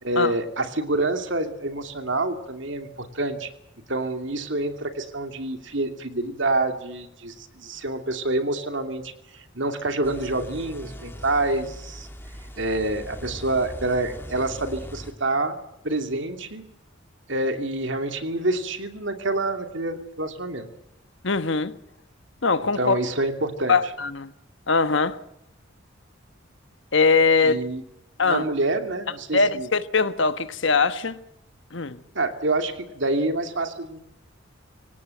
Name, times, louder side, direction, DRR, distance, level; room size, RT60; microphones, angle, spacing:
voice 1, 0.0-3.5 3.9-12.1 12.6-15.6 15.8-16.6 17.3-20.7 22.8-23.8 27.4-27.8 28.2-29.7 32.1-34.0, right 2 dB, 60° right, 2.7 m, -27 dB
sound 1, 10.0-15.1, equal, 10° left, 2.5 m, -40 dB
voice 2, 21.2-21.7 22.4-23.0 23.7-24.3 24.7-25.2 26.9-27.6 28.2-28.5 29.3-31.2 31.7-32.0, left 4 dB, 65° left, 1.3 m, -21 dB
26.0 x 18.0 x 7.9 m
head